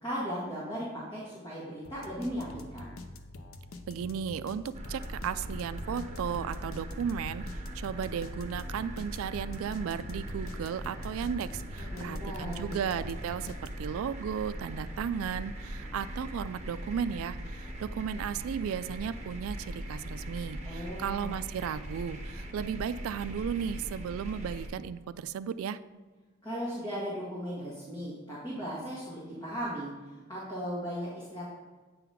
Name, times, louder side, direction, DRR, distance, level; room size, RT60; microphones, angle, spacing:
voice 1, 0.0-2.9 11.8-12.8 20.7-21.3 26.4-31.5, equal, 20° left, -8 dB, 1.7 m, -37 dB
sound 1, 1.8-14.0, left 2 dB, 80° left, 0.6 m, -46 dB
voice 2, 3.9-7.4 7.7-25.8, right 7 dB, 85° right, 14 dB, 0.3 m, -35 dB
Noisemetro (Long), 4.7-24.7, equal, 30° right, 1.1 m, -40 dB
8.3 x 3.9 x 5.7 m, 1.3 s
head